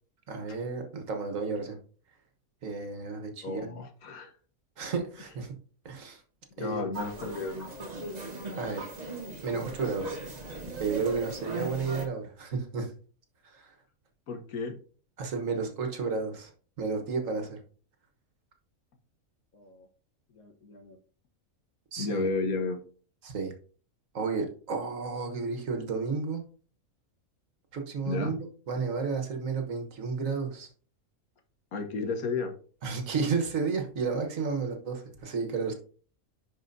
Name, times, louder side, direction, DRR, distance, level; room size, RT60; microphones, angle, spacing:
voice 1, 0.3-1.8 2.6-3.8 4.8-5.5 5.8-6.2 6.6-6.9 8.6-8.9 9.4-10.2 10.8-12.9 13.4-13.7 15.2-16.5 16.8-17.6 21.9-22.3 23.2-23.5 24.1-26.4 27.7-30.7 32.8-35.7, right 4 dB, 65° right, 4 dB, 1.6 m, -32 dB
voice 2, 3.4-4.3 6.6-7.7 14.3-14.7 19.5-19.9 20.3-21.0 22.0-22.8 28.1-28.4 31.7-32.5, left 4 dB, 90° left, 5 dB, 1.5 m, -33 dB
sound 1, 6.9-12.1, right 2 dB, 30° right, 1.1 m, -38 dB
11.0 x 4.9 x 2.7 m, 0.42 s
omnidirectional pair, 1.5 m